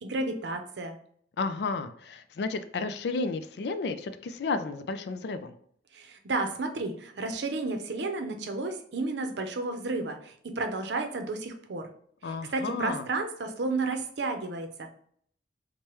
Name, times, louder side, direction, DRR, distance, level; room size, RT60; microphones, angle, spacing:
voice 1, 0.0-1.0 5.9-11.9 12.5-14.9, right 3 dB, 85° right, 5 dB, 0.6 m, -32 dB
voice 2, 1.4-5.5 12.2-13.1, left 3 dB, 70° left, 10 dB, 0.4 m, -32 dB
4.6 x 2.2 x 3.0 m, 0.62 s
head